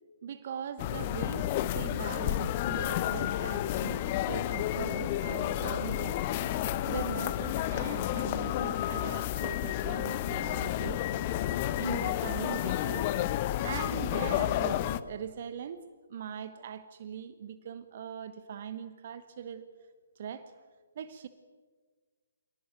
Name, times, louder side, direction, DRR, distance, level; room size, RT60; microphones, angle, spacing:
voice 1, 0.2-6.2 6.5-11.0 11.8-13.1 13.6-15.8 16.1-19.7 20.2-20.4 20.9-21.3, right 8 dB, 40° right, 12 dB, 1.2 m, -41 dB
sound 1, 0.8-15.0, left 12 dB, 30° left, 1.0 m, -31 dB
26.5 x 18.5 x 9.1 m, 1.5 s
figure-of-eight pair, 135°, 0 cm